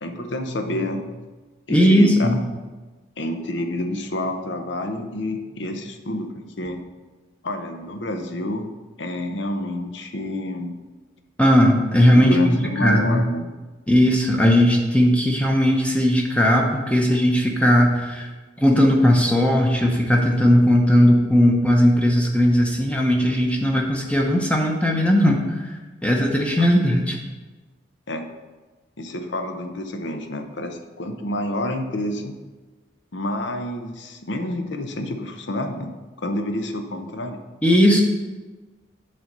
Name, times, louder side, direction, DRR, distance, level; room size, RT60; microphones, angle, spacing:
voice 1, 0.0-1.0 1.7-2.3 3.2-6.8 7.4-8.7 9.0-10.8 12.1-13.5 26.6-26.7 28.1-28.3 29.0-32.4 33.1-37.4, left 1 dB, 65° left, 6 dB, 0.8 m, -28 dB
voice 2, 1.7-2.4 11.4-13.3 13.9-18.3 18.6-27.2 37.6-38.0, equal, 5° left, 0 dB, 0.8 m, -18 dB
7.6 x 4.1 x 6.6 m, 1.3 s
head